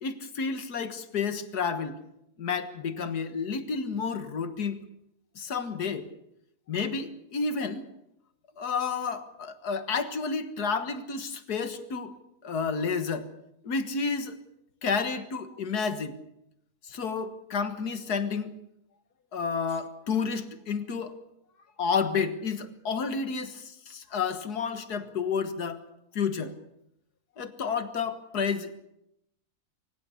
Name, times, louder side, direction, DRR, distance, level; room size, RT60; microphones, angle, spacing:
voice 1, 0.0-2.0 2.4-4.8 5.4-6.1 6.7-7.9 8.6-12.1 12.4-13.3 13.6-14.3 14.8-16.1 16.9-18.5 19.3-21.2 21.8-25.8 26.2-26.5 27.4-28.8, left 5 dB, 75° left, 11 dB, 2.0 m, -30 dB
24.5 x 15.5 x 8.4 m, 0.81 s
omnidirectional pair, 1.7 m